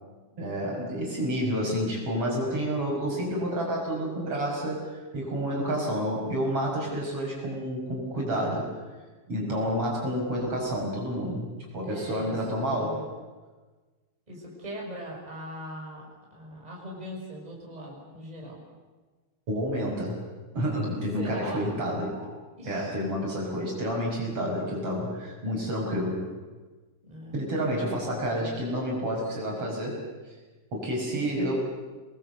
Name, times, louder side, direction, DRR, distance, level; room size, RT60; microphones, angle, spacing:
voice 1, 0.4-8.7 9.3-13.0 19.5-20.2 20.5-22.3 22.6-26.3 27.3-30.3 30.7-31.5, equal, 40° right, -2 dB, 6.9 m, -29 dB
voice 2, 11.8-13.1 14.3-18.6 21.2-21.7 22.6-22.9 27.0-27.4 28.3-28.6, equal, 10° right, -2 dB, 6.0 m, -40 dB
28.0 x 21.0 x 8.0 m, 1.3 s
omnidirectional pair, 3.9 m